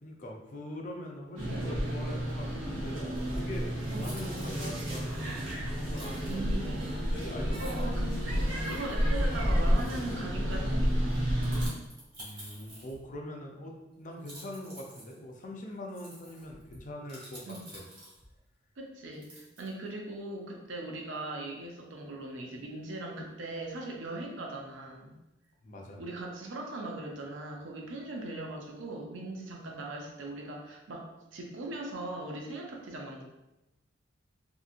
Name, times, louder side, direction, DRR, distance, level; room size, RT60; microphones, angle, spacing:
voice 1, 0.0-3.0 3.3-5.2 5.7-7.8 11.6-11.7 12.2-17.8 25.6-26.0, left 1 dB, 40° left, 0 dB, 0.4 m, -43 dB
voice 2, 1.4-1.7 3.9-4.2 6.2-6.8 7.6-8.2 8.7-11.0 17.4-17.6 18.8-25.1 26.0-33.2, right 2 dB, 70° right, 0 dB, 0.5 m, -39 dB
sound 1, 1.4-11.7, equal, 85° right, 0.8 m, -30 dB
sound 2, 3.9-4.8 5.9-6.4 7.1-7.2 7.4-7.9 8.6-9.0 9.7-10.2 11.1-13.2 14.1-18.4 19.1-19.9, right 1 dB, 30° right, 1.3 m, -50 dB
2.7 x 2.6 x 2.5 m, 0.98 s
head